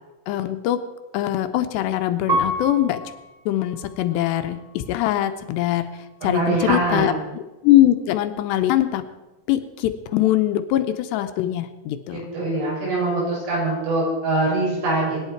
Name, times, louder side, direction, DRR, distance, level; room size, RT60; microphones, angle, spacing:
voice 1, 0.3-0.8 1.1-3.0 3.5-5.9 6.2-9.0 9.5-12.3, left 13 dB, 80° left, 9 dB, 2.7 m, -22 dB
Piano, 2.3-5.0 5.7-6.4, right 1 dB, 30° right, 1.6 m, -30 dB
voice 2, 6.2-7.2 12.1-15.2, right 2 dB, 85° right, -4 dB, 8.6 m, -23 dB
24.0 x 10.0 x 4.6 m, 1.1 s
omnidirectional pair, 5.2 m